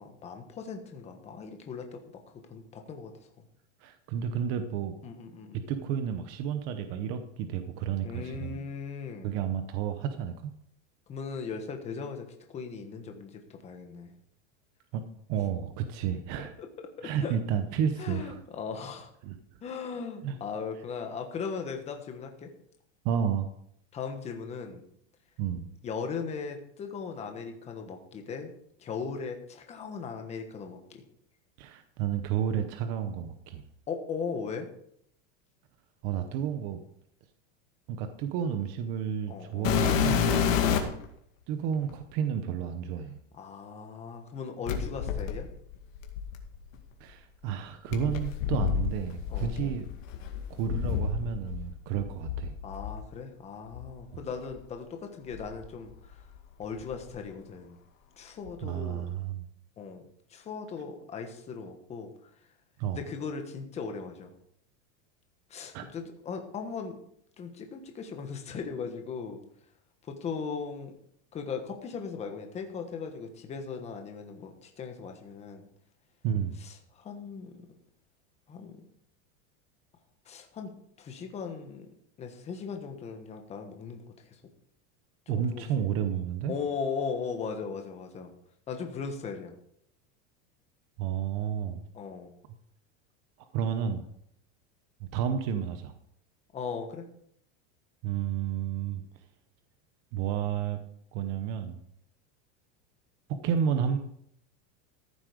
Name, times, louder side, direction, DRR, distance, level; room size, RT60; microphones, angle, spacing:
voice 1, 0.0-2.0 2.5-3.1 5.0-5.6 8.0-9.3 11.1-14.1 16.6-16.7 17.0-17.4 18.0-19.1 19.6-22.5 23.9-24.8 25.8-28.5 28.8-31.0 33.9-34.7 39.3-39.7 40.7-40.9 43.3-45.5 49.3-49.7 52.6-56.2 56.6-57.8 58.2-59.1 59.8-60.0 60.3-62.1 62.9-64.3 65.5-67.0 67.4-69.4 70.1-70.9 71.3-75.6 76.6-77.5 78.5-78.8 80.2-80.7 81.0-81.9 82.2-84.4 85.4-85.6 86.5-88.3 88.7-89.5 91.9-92.3 96.5-97.0, left 5 dB, 15° left, 5 dB, 1.2 m, -38 dB
voice 2, 3.8-4.9 5.7-8.6 9.2-10.5 14.9-15.0 15.3-16.5 17.0-18.4 19.2-19.4 20.2-20.4 23.0-23.5 25.4-25.7 31.6-33.6 36.0-36.8 37.9-40.5 41.5-43.2 47.0-49.9 50.5-52.5 54.1-54.3 58.6-59.4 62.8-63.0 65.7-65.9 76.2-76.6 85.3-86.6 91.0-91.8 93.5-94.0 95.0-95.9 98.0-99.0 100.1-100.8 101.1-101.8 103.3-104.0, right 8 dB, 35° right, 8 dB, 0.9 m, -31 dB
sound 1, 39.6-41.0 41.9-42.0 44.7-46.7 47.9-51.6 51.9-53.0 53.7-53.9 54.5-54.6 55.3-56.4 56.6-57.1 58.5-58.6, left 8 dB, 85° left, 2.2 m, -29 dB
14.0 x 7.6 x 5.1 m, 0.69 s
supercardioid pair, 175°, 39 cm